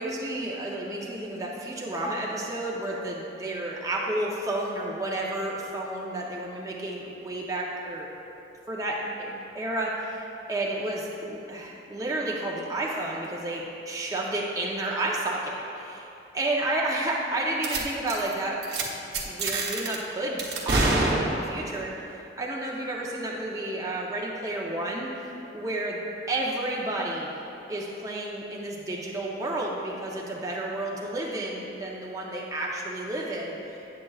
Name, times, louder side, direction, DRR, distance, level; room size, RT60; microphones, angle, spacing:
voice 1, 0.0-8.1 8.7-16.1 16.3-18.6 19.2-27.3 27.7-33.8, right 1 dB, 20° right, -3 dB, 0.6 m, -31 dB
sound 1, 17.6-17.8 18.1-18.3 18.6-18.8 19.1-20.0 20.4-21.7, right 2 dB, 65° right, 0.8 m, -26 dB
8.5 x 7.6 x 2.3 m, 2.9 s
head